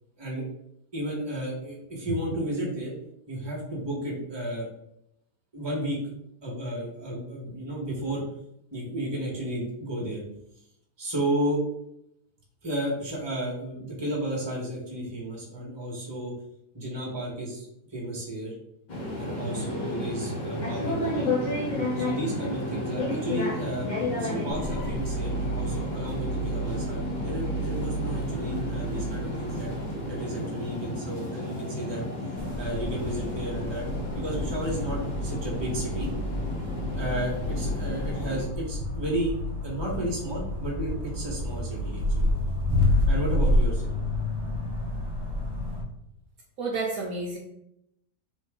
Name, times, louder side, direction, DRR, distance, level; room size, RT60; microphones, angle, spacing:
voice 1, 0.9-2.9 3.3-4.7 5.5-6.0 6.4-8.2 8.7-10.2 11.0-11.6 12.6-16.3 16.7-18.5 19.1-21.4 22.0-29.7 30.0-32.0 32.6-33.9 34.1-36.1 36.9-39.3 39.6-42.3 43.1-43.9, right 1 dB, 20° right, -3 dB, 1.1 m, -33 dB
sound 1, 18.9-38.5, left 1 dB, 35° left, 0.8 m, -32 dB
sound 2, 24.5-30.4, right 3 dB, 85° left, 1.2 m, -34 dB
sound 3, 32.4-45.8, left 1 dB, 40° right, 0.3 m, -29 dB
voice 2, 46.6-47.4, right 3 dB, 65° right, -1 dB, 1.0 m, -30 dB
4.1 x 3.1 x 3.6 m, 0.78 s
omnidirectional pair, 1.8 m